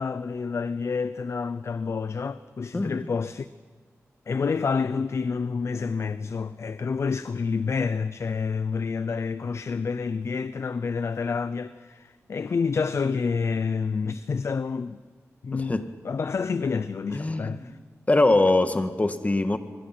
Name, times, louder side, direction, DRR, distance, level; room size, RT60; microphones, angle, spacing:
voice 1, 0.0-3.5 4.3-15.0 15.4-17.8, left 5 dB, 55° left, 0.6 m, -28 dB
voice 2, 15.5-15.9 17.1-17.7 18.1-19.6, left 2 dB, 25° left, 1.7 m, -23 dB
24.5 x 23.5 x 6.0 m
cardioid pair, 75°, 5 cm